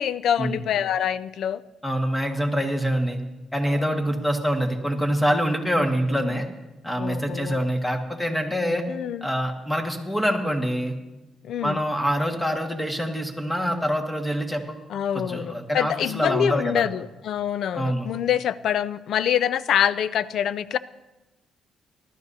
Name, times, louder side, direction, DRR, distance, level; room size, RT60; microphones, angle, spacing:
voice 1, 0.0-1.6 3.7-4.0 6.2-6.4 7.0-7.7 8.9-9.3 11.4-11.8 14.9-20.8, left 9 dB, 70° left, 16 dB, 0.4 m, -25 dB
voice 2, 1.8-3.2 3.5-6.5 6.8-8.8 9.2-10.9 11.6-14.8 15.3-16.9 17.7-18.1, equal, 10° left, 3 dB, 1.7 m, -25 dB
19.5 x 12.5 x 2.7 m, 1.0 s
cardioid pair, 90°, 0 cm